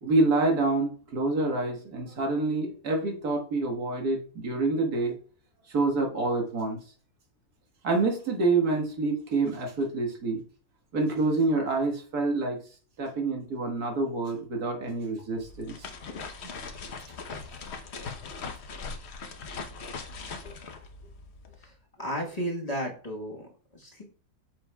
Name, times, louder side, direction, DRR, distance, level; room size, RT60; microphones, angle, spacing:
voice 1, 0.0-5.1 5.7-6.8 7.8-10.4 10.9-12.6 13.0-15.9, right 3 dB, 90° right, 2 dB, 1.9 m, -27 dB
sound 1, 15.3-21.7, left 4 dB, 50° left, 1.0 m, -40 dB
voice 2, 22.0-24.0, equal, 25° left, -1 dB, 1.3 m, -34 dB
8.4 x 6.5 x 2.2 m, 0.41 s
omnidirectional pair, 1.6 m